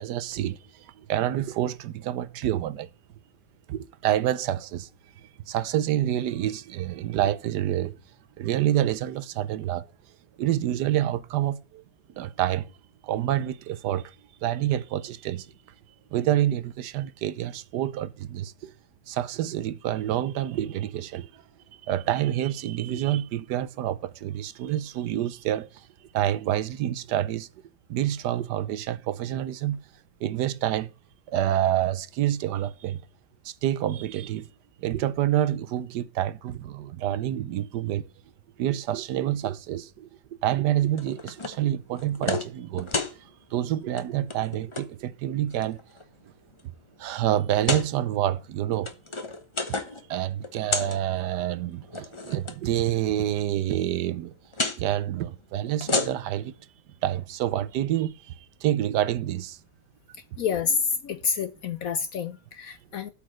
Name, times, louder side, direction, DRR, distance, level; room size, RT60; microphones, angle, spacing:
voice 1, 0.0-2.9 3.7-4.9 5.5-8.0 8.4-9.9 10.4-11.8 12.2-12.7 13.0-14.1 14.4-15.5 16.1-18.7 19.1-21.3 21.8-25.9 26.1-27.5 27.9-29.8 30.2-30.9 31.3-33.0 33.4-34.5 34.8-38.1 38.6-40.1 40.4-42.9 43.5-45.8 47.0-48.9 50.1-54.3 54.8-56.5 57.0-58.3 58.6-59.6, right 12 dB, 70° right, 1.2 m, -27 dB
sound 1, 41.0-41.6 42.0-42.5 42.8-43.2 43.8-44.0 44.3-44.9 45.5-46.0 46.6-46.7 47.5-47.9 48.6-50.0 50.3-51.0 51.8-52.6 54.5-54.8 55.7-56.4, left 3 dB, 25° left, 0.6 m, -30 dB
voice 2, 60.4-63.1, left 6 dB, 65° left, 0.9 m, -28 dB
8.4 x 5.7 x 6.2 m
omnidirectional pair, 1.9 m